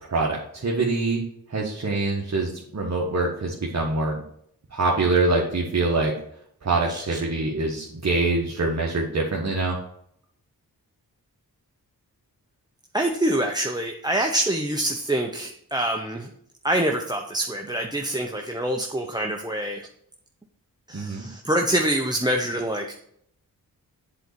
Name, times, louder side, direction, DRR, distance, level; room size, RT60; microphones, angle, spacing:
voice 1, 0.1-1.2 1.5-4.2 4.7-6.1 6.6-9.8 20.9-21.3, right 3 dB, 45° right, -2 dB, 1.5 m, -24 dB
voice 2, 12.9-16.3 16.6-19.8 20.9-22.9, right 1 dB, 10° right, 2 dB, 0.8 m, -25 dB
7.7 x 4.0 x 6.8 m, 0.70 s
cardioid pair, 55°, 38 cm